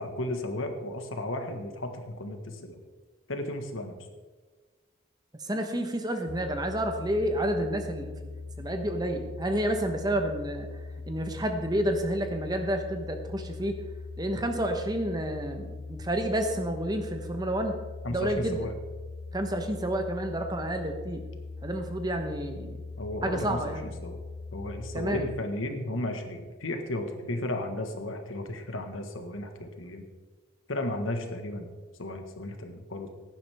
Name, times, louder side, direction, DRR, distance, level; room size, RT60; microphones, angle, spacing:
voice 1, 0.0-2.8 3.3-3.9 18.0-18.7 23.0-24.2 24.5-30.1 30.7-31.7 32.0-33.1, left 1 dB, 80° left, 5 dB, 1.5 m, -34 dB
voice 2, 5.4-10.7 11.1-13.7 14.2-17.8 18.1-18.6 19.3-21.2 21.6-22.8 23.2-23.8 24.9-25.3, right 1 dB, 20° right, 5 dB, 1.1 m, -30 dB
sound 1, 6.3-25.4, left 3 dB, 35° left, 0.4 m, -41 dB
15.5 x 10.5 x 3.5 m, 1.3 s
head